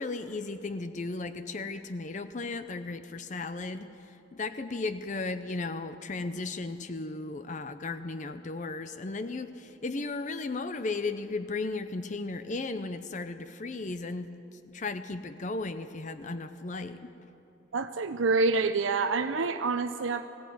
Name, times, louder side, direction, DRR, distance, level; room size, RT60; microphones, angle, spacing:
voice 1, 0.0-17.1, left 3 dB, 40° left, 10 dB, 0.6 m, -35 dB
voice 2, 17.7-20.3, right 3 dB, 90° right, 8 dB, 0.7 m, -27 dB
20.0 x 15.5 x 9.4 m, 3.0 s
head